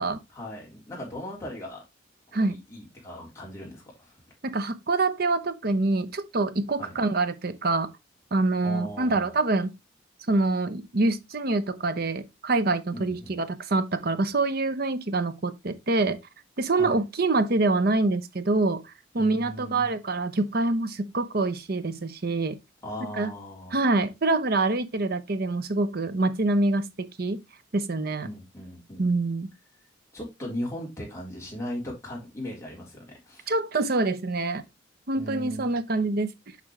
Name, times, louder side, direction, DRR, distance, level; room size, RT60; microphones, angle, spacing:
voice 1, 0.3-1.8 2.3-4.2 6.8-6.9 8.6-9.3 12.9-13.4 16.8-17.0 19.2-19.9 22.8-23.8 28.2-29.0 30.1-33.5 35.1-35.7, equal, 15° left, 3.7 m, -38 dB
voice 2, 4.4-7.9 8.3-9.8 10.3-16.2 16.6-18.8 19.1-22.6 23.2-23.3 23.7-27.4 27.7-28.3 29.0-29.5 33.5-34.6 35.1-36.3, right 2 dB, 50° right, 0.8 m, -25 dB
8.3 x 5.2 x 3.2 m
head